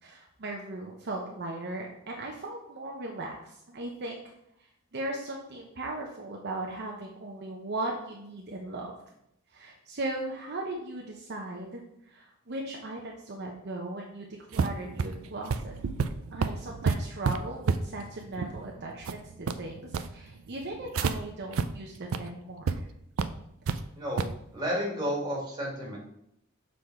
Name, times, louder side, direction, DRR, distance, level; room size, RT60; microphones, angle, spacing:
voice 1, 0.0-4.3 4.9-8.9 9.5-11.8 12.1-15.8 16.3-22.9, right 2 dB, 55° right, 0 dB, 0.8 m, -38 dB
sound 1, 14.5-21.1 21.5-21.7 22.0-22.2 22.7-22.8 23.2-23.8 24.2-24.4, right 5 dB, 80° right, 0.4 m, -30 dB
voice 2, 23.9-26.0, equal, 20° right, -3 dB, 1.9 m, -32 dB
6.8 x 4.0 x 4.5 m, 0.77 s
head